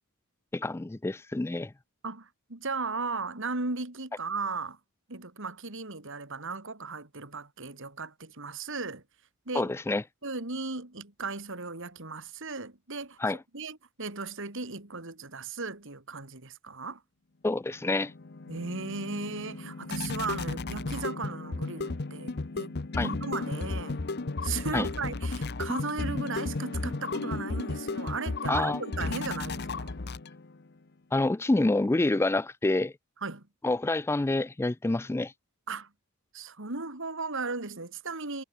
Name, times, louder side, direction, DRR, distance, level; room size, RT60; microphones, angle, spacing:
voice 1, 0.5-1.7 9.5-10.0 13.2-13.4 17.4-18.1 23.0-23.1 24.7-24.9 28.5-28.8 31.1-32.9 33.6-35.3, left 2 dB, 10° left, 0.3 m, -27 dB
voice 2, 2.0-4.8 5.1-9.0 9.5-9.7 10.2-13.2 13.5-17.0 18.5-22.7 23.0-24.0 24.4-30.0 33.2-33.5 35.7-35.9 36.3-38.4, right 4 dB, 60° right, 3.1 m, -36 dB
sound 1, 17.8-30.6, left 3 dB, 50° left, 0.9 m, -34 dB
head